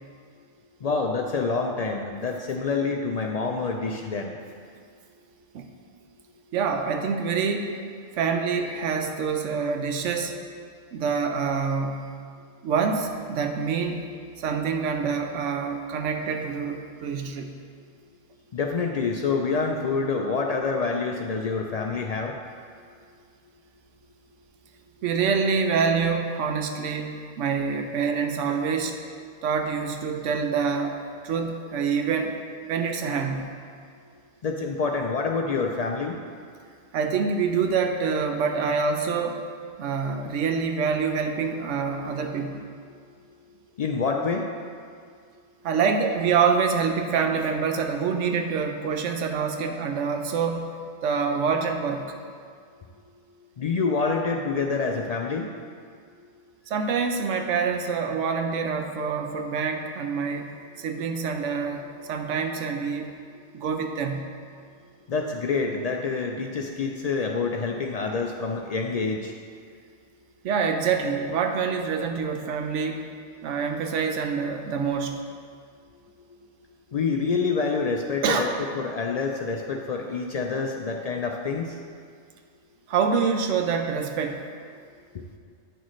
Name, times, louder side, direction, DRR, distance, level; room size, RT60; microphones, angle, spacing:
voice 1, 0.8-4.3 18.5-22.3 34.4-36.2 43.8-44.5 53.6-55.5 65.1-69.3 76.9-78.5 78.8-81.8 85.1-85.2, left 4 dB, 80° left, 1 dB, 0.3 m, -27 dB
voice 2, 6.5-7.7 8.2-10.3 10.9-12.1 12.6-14.0 14.4-17.5 25.0-28.9 29.4-31.0 31.2-32.4 32.7-33.5 36.9-39.4 39.8-42.6 45.6-50.8 51.0-52.2 56.7-63.1 63.5-64.3 70.4-73.0 73.4-75.2 78.2-78.5 82.9-84.4, right 5 dB, 85° right, 5 dB, 1.0 m, -26 dB
8.9 x 6.3 x 3.1 m, 2.2 s
omnidirectional pair, 1.2 m